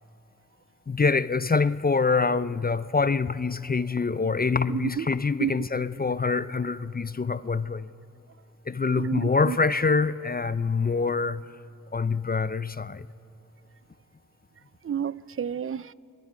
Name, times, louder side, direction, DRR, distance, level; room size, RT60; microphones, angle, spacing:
voice 1, 0.9-7.9 8.7-11.4 11.9-13.1, left 4 dB, 30° left, 0.5 m, -25 dB
voice 2, 4.7-5.1 5.4-5.6 8.9-9.6 14.8-15.9, right 8 dB, 45° right, 0.5 m, -30 dB
28.0 x 23.0 x 5.0 m
cardioid pair, 45°, 32 cm